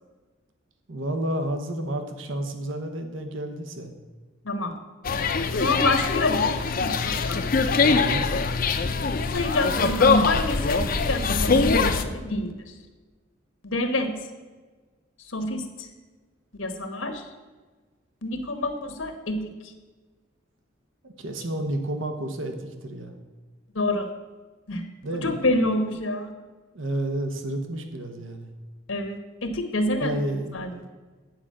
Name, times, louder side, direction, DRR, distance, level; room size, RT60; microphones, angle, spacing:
voice 1, 0.9-3.9 7.9-8.3 21.0-22.5 22.8-23.2 25.0-25.4 26.7-28.5 30.0-30.8, right 1 dB, 75° right, 6 dB, 1.0 m, -30 dB
voice 2, 4.4-4.8 5.5-6.5 6.8-7.4 9.2-12.8 13.6-14.3 15.2-15.9 16.6-17.3 18.2-19.7 23.7-24.1 24.7-24.8 25.2-26.3 28.9-30.2 30.5-30.8, left 1 dB, 85° left, 6 dB, 1.2 m, -27 dB
sound 1, 5.0-12.0, left 4 dB, 45° left, 0.5 m, -23 dB
8.9 x 5.0 x 7.4 m, 1.3 s
head